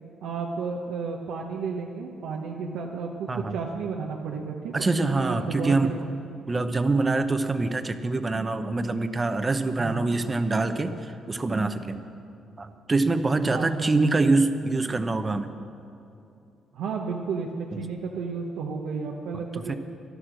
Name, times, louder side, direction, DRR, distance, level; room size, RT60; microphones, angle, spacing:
voice 1, 0.2-6.0 6.3-6.4 9.7-10.1 13.5-14.1 16.7-19.7, right 5 dB, 85° right, 0 dB, 1.0 m, -32 dB
voice 2, 3.3-3.6 4.7-5.9 6.5-12.0 12.6-15.5 17.7-17.9 19.3-19.7, right 3 dB, 25° right, 9 dB, 0.9 m, -25 dB
13.0 x 12.0 x 6.3 m, 2.7 s
cardioid pair, 90°, 0 cm